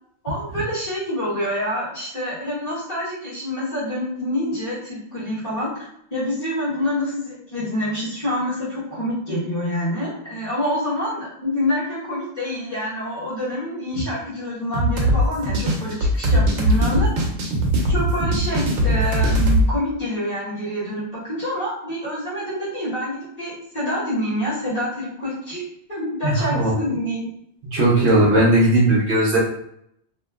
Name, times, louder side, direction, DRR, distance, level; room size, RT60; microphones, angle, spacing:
voice 1, 0.2-17.1 17.9-25.6 25.9-27.3 27.9-28.0, left 1 dB, 35° left, -9 dB, 1.1 m, -27 dB
sound 1, 14.7-19.7, equal, 90° right, 1.0 m, -20 dB
voice 2, 26.2-26.7 27.6-29.4, right 1 dB, 65° right, -5 dB, 0.9 m, -17 dB
2.9 x 2.3 x 2.3 m, 0.73 s
omnidirectional pair, 1.4 m